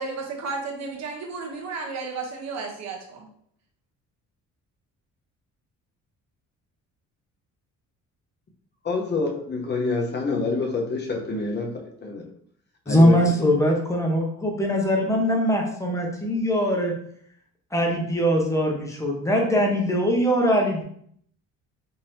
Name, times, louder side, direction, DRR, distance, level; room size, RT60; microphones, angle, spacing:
voice 1, 0.0-3.3, right 4 dB, 55° right, 0 dB, 0.9 m, -33 dB
voice 2, 8.8-12.2 12.9-13.5, left 3 dB, 30° left, 0 dB, 0.9 m, -27 dB
voice 3, 12.9-16.9 17.7-20.8, equal, 10° left, 0 dB, 0.9 m, -21 dB
3.9 x 2.8 x 2.7 m, 0.65 s
cardioid pair, 100°, 33 cm